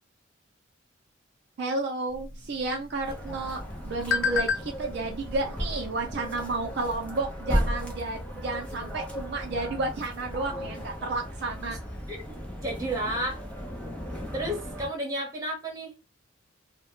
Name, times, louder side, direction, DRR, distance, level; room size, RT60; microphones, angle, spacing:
voice 1, 1.6-11.8, right 2 dB, 55° right, 2 dB, 0.4 m, -32 dB
sound 1, 2.1-7.2, left 5 dB, 90° left, 0.5 m, -34 dB
sound 2, 3.0-14.9, equal, 5° left, 0.4 m, -35 dB
voice 2, 12.1-13.4 14.3-15.9, right 1 dB, 20° right, -1 dB, 0.9 m, -32 dB
2.1 x 2.0 x 2.9 m, 0.25 s
head